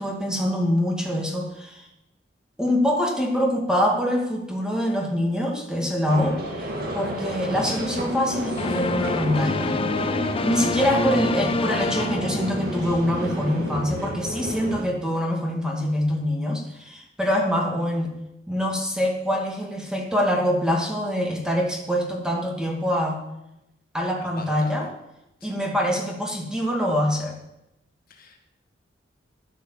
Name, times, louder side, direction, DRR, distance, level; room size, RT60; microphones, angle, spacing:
voice 1, 0.0-1.8 2.6-9.8 10.4-18.1 18.5-23.2 23.9-24.9 25.4-27.4, equal, 5° right, -1 dB, 2.3 m, -24 dB
sound 1, 6.1-14.8, equal, 55° right, 2.3 m, -32 dB
Singing / Musical instrument, 7.6-13.8, left 1 dB, 75° right, 6.0 m, -34 dB
sound 2, 8.6-13.0, left 3 dB, 30° left, 0.4 m, -27 dB
voice 2, 24.2-24.9 25.4-25.5 28.1-28.4, left 2 dB, 50° left, 4 dB, 1.8 m, -42 dB
11.0 x 9.2 x 7.3 m, 0.89 s
head